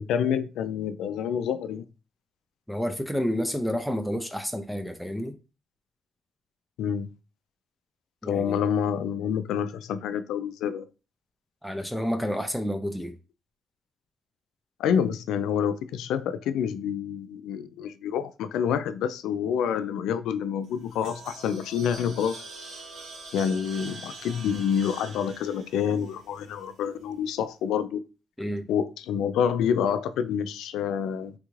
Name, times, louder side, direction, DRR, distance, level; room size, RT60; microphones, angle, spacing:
voice 1, 0.0-1.8 6.8-7.1 8.2-10.8 14.8-22.4 23.3-28.0 28.7-31.3, left 8 dB, 85° left, 0.3 m, -27 dB
voice 2, 2.7-5.4 8.2-8.6 11.6-13.2 28.4-28.7, equal, ahead, 0.4 m, -30 dB
sound 1, 20.6-26.9, right 3 dB, 75° right, 0.9 m, -44 dB
3.5 x 2.4 x 3.1 m
cardioid pair, 90°, 0 cm